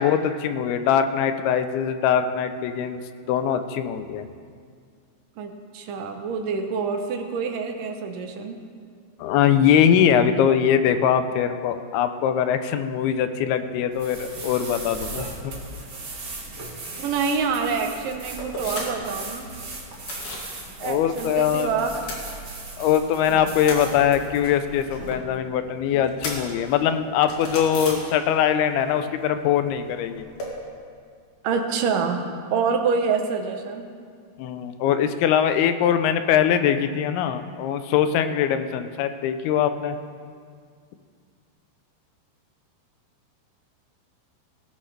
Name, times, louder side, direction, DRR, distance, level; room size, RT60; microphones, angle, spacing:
voice 1, 0.0-3.0 3.3-4.3 9.2-15.5 20.8-21.7 22.8-30.3 34.4-40.0, left 9 dB, 85° left, 9 dB, 2.6 m, -22 dB
voice 2, 5.4-8.6 17.0-19.5 20.8-21.9 23.3-23.5 31.4-32.2 32.5-33.8, right 5 dB, 70° right, 4 dB, 2.2 m, -26 dB
sound 1, 13.9-25.1, right 2 dB, 40° right, 1.6 m, -38 dB
sound 2, 18.4-19.2 19.4-20.5 20.8-21.6 21.9-22.9 23.2-28.6 28.9-30.5, left 2 dB, 50° left, 3.6 m, -36 dB
18.0 x 14.5 x 3.3 m, 2.1 s
omnidirectional pair, 4.5 m